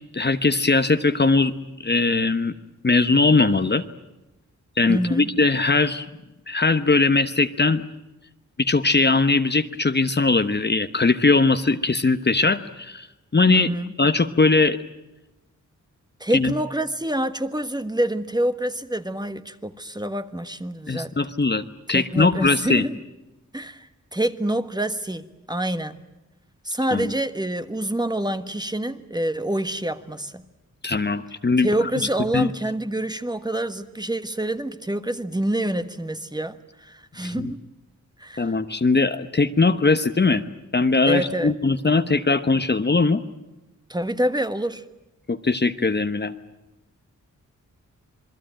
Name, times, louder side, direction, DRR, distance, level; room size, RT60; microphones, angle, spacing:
voice 1, 0.1-1.5 1.8-2.5 2.8-3.8 4.8-6.0 6.5-7.8 8.6-13.1 13.3-13.7 14.0-14.8 16.3-16.5 20.9-21.6 21.9-22.9 26.9-27.1 30.8-31.7 32.3-32.5 37.2-37.5 38.4-40.4 40.7-43.2 45.3-46.3, left 3 dB, 35° left, 10 dB, 1.0 m, -20 dB
voice 2, 4.9-5.3 13.5-13.9 16.2-21.1 21.9-23.0 23.5-26.0 26.6-30.4 31.6-37.6 38.2-38.5 41.1-41.5 43.9-44.8, right 1 dB, 15° right, 10 dB, 1.4 m, -27 dB
27.0 x 21.5 x 9.0 m, 1.0 s
wide cardioid pair, 85°, 32 cm